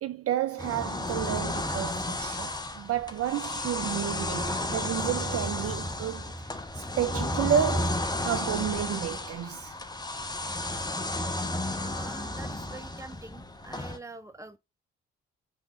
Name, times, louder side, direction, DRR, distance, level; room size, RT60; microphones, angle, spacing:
voice 1, 0.0-9.8, right 10 dB, 45° right, 0.5 m, -31 dB
sound 1, 0.6-14.0, left 1 dB, 15° left, 0.9 m, -32 dB
voice 2, 11.7-14.6, right 2 dB, 10° right, 0.9 m, -45 dB
5.5 x 3.6 x 2.6 m
hypercardioid pair, 40°, 32 cm